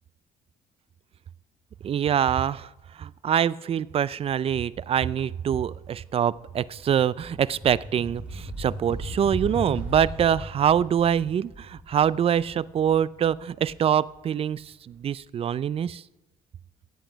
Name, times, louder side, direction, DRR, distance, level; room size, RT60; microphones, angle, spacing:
voice 1, 1.8-2.7 3.0-16.0, right 9 dB, 35° right, 20 dB, 0.3 m, -24 dB
sound 1, 5.9-14.5, right 1 dB, 5° right, 2.7 m, -38 dB
15.5 x 8.2 x 5.1 m, 1.0 s
cardioid pair, 110°, 17 cm